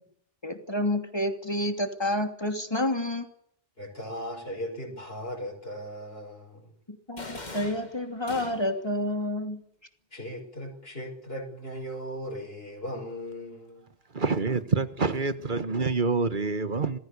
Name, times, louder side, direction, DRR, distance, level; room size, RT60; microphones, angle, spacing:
voice 1, 0.4-3.3 6.9-9.6, left 1 dB, 25° left, 6 dB, 2.9 m, -29 dB
voice 2, 3.8-6.7 10.1-13.9, equal, 70° left, 0 dB, 6.5 m, -38 dB
sound 1, 7.2-8.9, left 2 dB, 45° left, 2.4 m, -42 dB
voice 3, 14.1-17.0, right 4 dB, 50° right, 12 dB, 1.7 m, -26 dB
27.5 x 19.0 x 6.9 m, 0.67 s
omnidirectional pair, 1.0 m